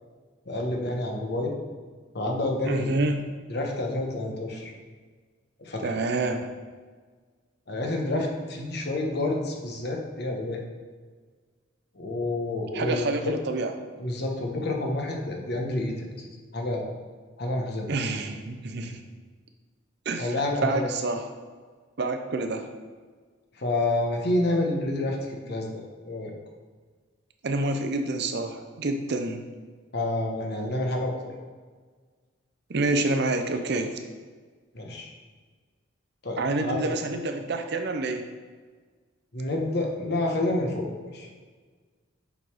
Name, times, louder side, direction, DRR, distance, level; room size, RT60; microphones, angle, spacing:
voice 1, 0.5-1.5 2.1-3.0 3.5-4.7 5.6-5.9 7.7-10.6 11.9-13.3 14.0-16.1 16.5-16.9 17.4-18.0 20.2-20.9 23.5-26.3 29.9-31.4 34.7-35.1 36.2-37.0 39.3-41.3, left 2 dB, 55° left, 1 dB, 1.1 m, -29 dB
voice 2, 2.6-3.2 5.8-6.5 12.7-13.7 17.9-19.0 20.1-21.3 22.0-22.7 27.4-29.4 32.7-33.9 36.4-38.3, right 2 dB, 60° right, 6 dB, 0.6 m, -28 dB
7.2 x 4.0 x 4.7 m, 1.5 s
head